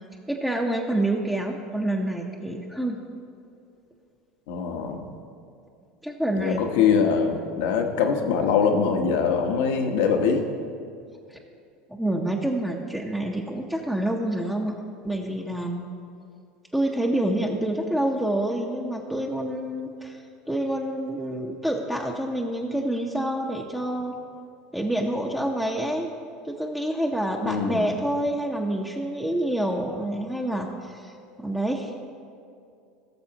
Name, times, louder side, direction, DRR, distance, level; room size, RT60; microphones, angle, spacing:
voice 1, 0.3-3.0 6.0-6.6 11.3-11.4 12.0-14.7 15.0-15.8 16.7-20.2 20.5-24.1 24.7-26.1 26.4-31.1 31.4-32.0, right 1 dB, 5° right, -1 dB, 0.8 m, -27 dB
voice 2, 4.5-5.0 6.4-10.4 27.4-27.9, left 6 dB, 75° left, 4 dB, 1.1 m, -23 dB
17.0 x 6.8 x 2.9 m, 2.4 s
supercardioid pair, 100°, 0 cm